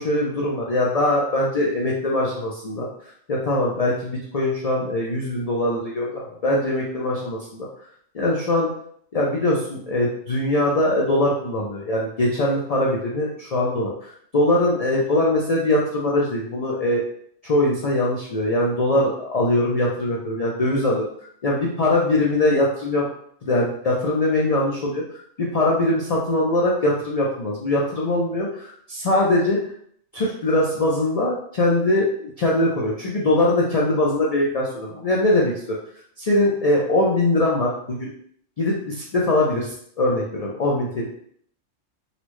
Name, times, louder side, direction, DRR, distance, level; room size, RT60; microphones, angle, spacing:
voice 1, 0.0-2.9 3.3-7.7 8.1-8.7 9.1-13.9 14.3-17.0 17.4-21.0 21.4-23.1 23.4-25.0 25.4-29.6 30.1-32.1 32.4-35.8 36.2-38.1 38.6-41.0, left 1 dB, 80° left, -3 dB, 0.3 m, -22 dB
4.0 x 2.0 x 3.0 m, 0.64 s
omnidirectional pair, 1.4 m